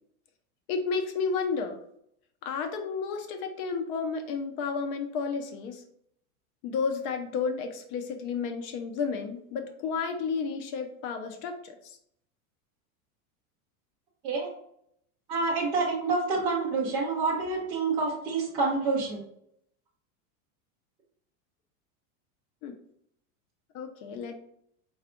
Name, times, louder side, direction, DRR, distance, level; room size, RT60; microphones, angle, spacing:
voice 1, 0.7-1.8 2.4-5.8 6.6-12.0 22.6-22.8 23.7-24.3, left 5 dB, 40° left, 6 dB, 0.6 m, -32 dB
voice 2, 15.3-19.2, right 3 dB, 15° right, -7 dB, 0.4 m, -28 dB
4.7 x 2.3 x 3.6 m, 0.71 s
supercardioid pair, 160°, 44 cm